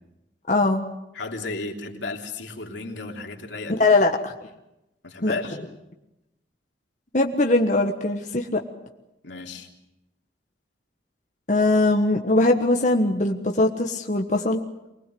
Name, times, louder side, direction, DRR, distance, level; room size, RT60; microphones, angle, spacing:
voice 1, 0.5-0.8 3.8-4.3 5.2-5.3 7.1-8.6 11.5-14.6, left 2 dB, 40° left, 3 dB, 1.3 m, -21 dB
voice 2, 1.1-3.8 5.0-5.6 9.2-9.7, left 3 dB, 85° left, 2 dB, 3.2 m, -33 dB
25.0 x 19.5 x 7.8 m, 0.92 s
head